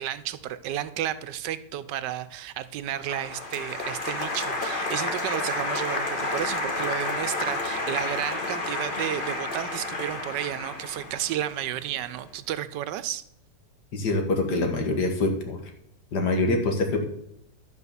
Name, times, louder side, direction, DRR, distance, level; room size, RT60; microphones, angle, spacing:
voice 1, 0.0-13.2, right 11 dB, 80° right, 14 dB, 1.3 m, -32 dB
Applause, 3.0-12.1, left 2 dB, 30° left, 1.4 m, -31 dB
voice 2, 13.9-15.6 16.1-17.0, left 2 dB, 70° left, 4 dB, 2.1 m, -25 dB
11.0 x 5.0 x 6.9 m, 0.76 s
omnidirectional pair, 1.9 m